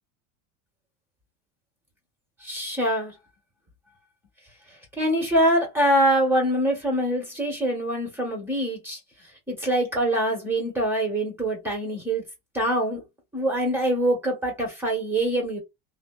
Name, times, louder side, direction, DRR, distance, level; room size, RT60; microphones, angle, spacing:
voice 1, 2.4-3.1 5.0-9.0 9.5-12.2 12.5-13.0 13.3-15.6, right 1 dB, 5° right, 1.3 m, -24 dB
2.6 x 2.1 x 2.2 m
supercardioid pair, 140°, 42 cm